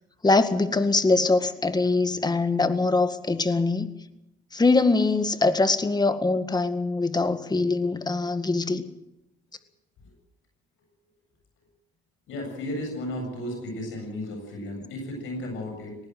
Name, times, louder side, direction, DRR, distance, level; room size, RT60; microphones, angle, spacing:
voice 1, 0.2-3.9 4.5-8.8, left 3 dB, 20° left, 10 dB, 1.9 m, -23 dB
voice 2, 12.3-16.0, left 1 dB, 85° left, 2 dB, 7.9 m, -34 dB
19.0 x 17.5 x 7.8 m, 0.90 s
cardioid pair, 90°, 20 cm